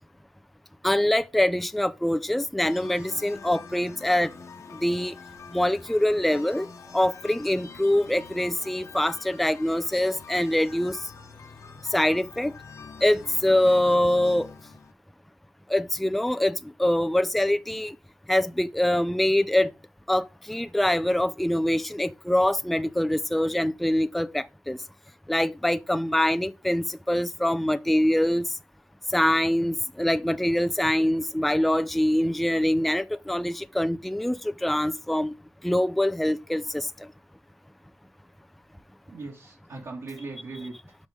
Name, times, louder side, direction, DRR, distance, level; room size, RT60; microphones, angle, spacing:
voice 1, 0.8-4.3 4.7-5.1 5.5-6.7 6.9-11.0 11.9-12.5 13.0-14.5 15.7-17.9 18.3-19.7 20.1-24.8 25.3-28.5 29.1-35.3 35.6-36.9, left 1 dB, ahead, 0.4 m, -24 dB
sound 1, 2.6-14.9, left 5 dB, 60° left, 1.0 m, -45 dB
voice 2, 39.1-41.0, right 3 dB, 65° right, 2.4 m, -39 dB
6.3 x 5.4 x 5.2 m
wide cardioid pair, 150°, 6 cm